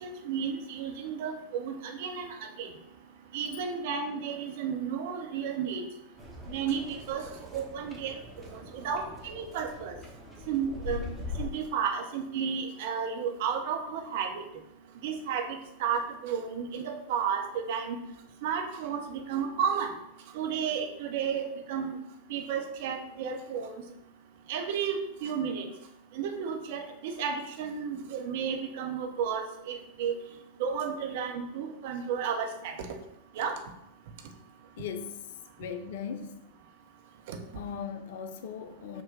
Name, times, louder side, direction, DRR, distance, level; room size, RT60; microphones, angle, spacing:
voice 1, 0.0-2.3 2.6-2.7 3.3-5.8 6.5-7.2 7.5-8.1 8.5-10.0 10.5-11.1 11.4-14.3 15.0-15.4 15.8-18.0 18.4-19.9 20.3-21.9 22.3-23.7 24.5-25.6 26.2-30.1 30.6-32.7 33.4-33.5, right 7 dB, 50° right, 0.6 m, -32 dB
sound 1, 6.2-11.5, left 4 dB, 10° left, 1.0 m, -42 dB
voice 2, 34.8-35.2 35.6-36.4 37.5-39.0, left 7 dB, 55° left, 0.3 m, -38 dB
6.4 x 2.2 x 3.7 m
figure-of-eight pair, 90°, 0 cm